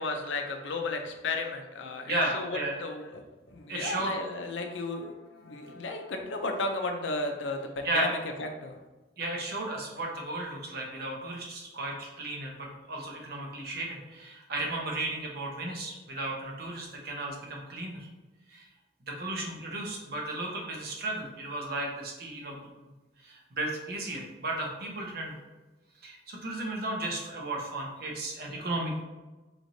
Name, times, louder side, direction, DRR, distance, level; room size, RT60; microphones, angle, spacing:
voice 1, 0.0-3.2 3.5-8.8, left 3 dB, 70° left, 4 dB, 0.5 m, -34 dB
voice 2, 2.1-2.8 3.7-4.1 7.8-8.1 9.2-18.1 18.5-18.7 19.1-22.6 23.2-25.3 26.0-29.0, right 2 dB, 50° right, -1 dB, 0.8 m, -34 dB
4.2 x 3.1 x 2.7 m, 1.2 s
head